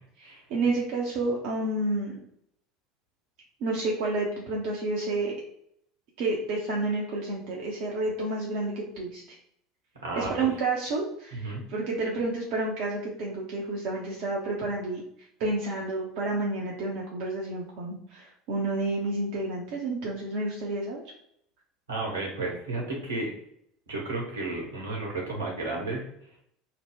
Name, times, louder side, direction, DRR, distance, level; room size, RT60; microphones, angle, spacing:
voice 1, 0.2-2.1 3.6-5.3 6.2-9.4 10.2-15.0 15.4-21.0, right 2 dB, 55° right, -2 dB, 0.6 m, -30 dB
voice 2, 10.0-10.3 11.3-11.6 21.9-23.3 23.9-26.0, right 2 dB, 80° right, -2 dB, 1.1 m, -32 dB
2.8 x 2.1 x 3.5 m, 0.71 s
figure-of-eight pair, 70°, 0 cm